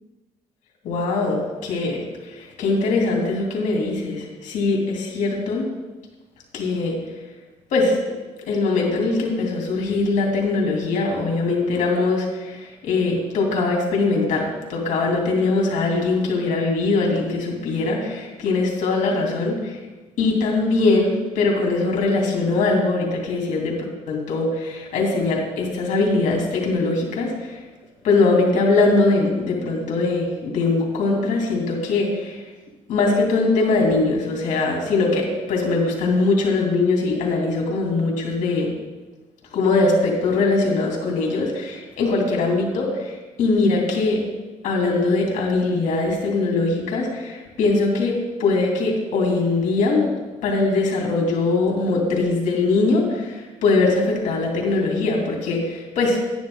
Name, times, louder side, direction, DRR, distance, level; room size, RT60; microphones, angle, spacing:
voice 1, 0.8-5.7 6.5-7.0 7.7-8.0 8.5-19.8 20.2-27.5 28.0-32.4 32.9-38.7 39.5-44.2 44.6-50.2 50.4-56.2, left 3 dB, 70° left, 0 dB, 2.6 m, -21 dB
10.5 x 10.0 x 3.7 m, 1.2 s
cardioid pair, 135°, 13 cm